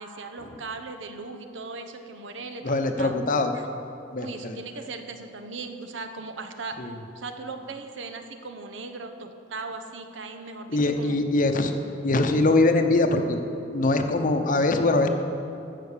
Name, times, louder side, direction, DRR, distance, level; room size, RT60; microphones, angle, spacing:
voice 1, 0.0-3.2 3.5-3.6 4.2-6.8 7.1-11.2, right 3 dB, 75° right, 6 dB, 0.9 m, -38 dB
voice 2, 2.6-3.5 4.1-4.6 6.8-6.9 10.7-11.7 12.0-13.4 13.7-15.1, left 2 dB, 45° left, 6 dB, 0.8 m, -22 dB
14.0 x 5.8 x 6.7 m, 2.8 s
head